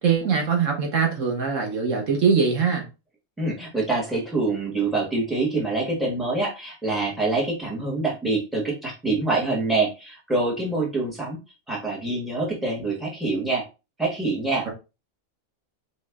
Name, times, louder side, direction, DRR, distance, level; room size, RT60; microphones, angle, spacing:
voice 1, 0.0-2.8, right 6 dB, 80° right, 1.4 m, -22 dB
voice 2, 3.4-11.4 11.7-13.6 14.0-14.7, right 3 dB, ahead, 1.5 m, -25 dB
4.4 x 3.1 x 3.4 m
omnidirectional pair, 1.3 m